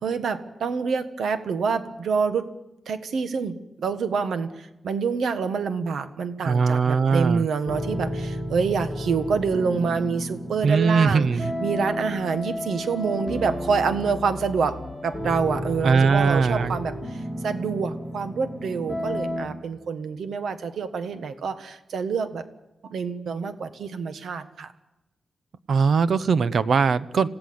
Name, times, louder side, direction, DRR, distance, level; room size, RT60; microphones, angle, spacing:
voice 1, 0.0-2.5 2.9-3.6 3.8-11.3 11.6-17.0 17.4-22.4 22.9-24.7, right 5 dB, 90° right, 10 dB, 1.5 m, -27 dB
voice 2, 6.4-7.5 10.6-11.5 15.8-16.8 25.7-27.3, right 5 dB, 60° right, 15 dB, 0.8 m, -20 dB
sound 1, 7.6-19.5, equal, 5° left, 3.4 m, -32 dB
27.0 x 16.5 x 7.9 m, 0.97 s
wide cardioid pair, 160°, 0 cm